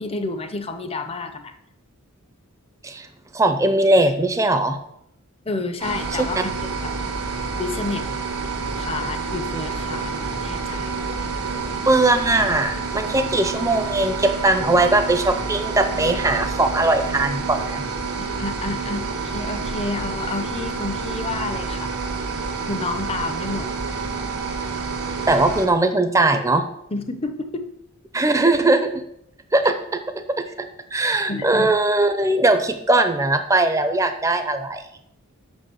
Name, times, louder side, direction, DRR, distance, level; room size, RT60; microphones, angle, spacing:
voice 1, 0.0-1.6 5.4-6.5 6.8-6.9 7.6-8.1 8.7-11.1 18.2-21.9 22.7-23.7 26.9-27.6 31.3-31.7, left 3 dB, 25° left, 8 dB, 0.7 m, -30 dB
voice 2, 3.3-4.8 11.9-17.8 25.3-26.6 28.1-28.9 29.5-34.8, right 2 dB, 15° right, 8 dB, 0.6 m, -20 dB
sound 1, 5.8-25.7, right 4 dB, 90° right, 1.7 m, -28 dB
6.3 x 6.0 x 7.1 m, 0.78 s
head